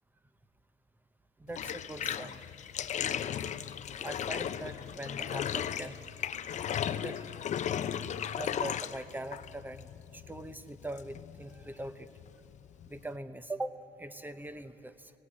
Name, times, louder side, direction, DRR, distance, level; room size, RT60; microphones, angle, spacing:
voice 1, 1.4-2.4 4.0-6.0 6.9-7.3 7.8-7.9 8.3-12.1 12.9-13.7 14.0-15.1, right 1 dB, 10° right, 12 dB, 0.8 m, -42 dB
Bathtub (filling or washing), 1.5-13.2, left 9 dB, 45° left, 0.6 m, -36 dB
18.5 x 17.5 x 8.6 m, 2.7 s
cardioid pair, 110°, 17 cm